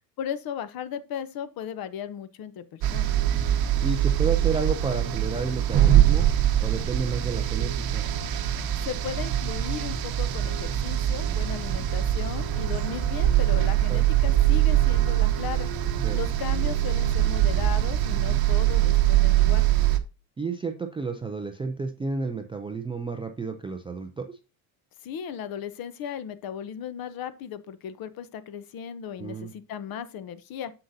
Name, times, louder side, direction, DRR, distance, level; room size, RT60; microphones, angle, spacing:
voice 1, 0.2-3.1 8.8-15.7 16.1-19.7 25.0-30.7, left 8 dB, 45° left, 0.8 m, -36 dB
sound 1, 2.8-20.0, right 12 dB, 45° right, 0.9 m, -23 dB
voice 2, 3.8-6.3 6.6-8.0 11.7-11.9 13.9-14.0 16.0-16.2 18.1-18.4 20.4-24.4 29.2-29.5, right 4 dB, 10° right, 0.3 m, -31 dB
7.8 x 6.6 x 2.7 m
cardioid pair, 130°, 50 cm